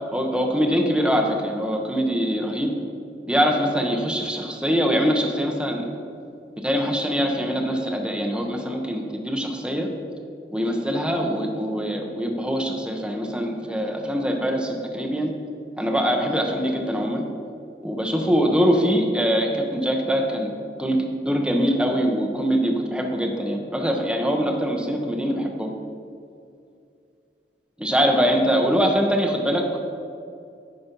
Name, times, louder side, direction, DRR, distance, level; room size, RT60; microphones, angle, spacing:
voice 1, 0.1-2.7 3.2-5.8 6.6-9.9 10.5-15.3 15.8-17.2 17.8-20.5 20.8-25.7 27.8-29.8, equal, 5° right, 1 dB, 0.8 m, -23 dB
10.0 x 4.3 x 5.2 m, 2.5 s
head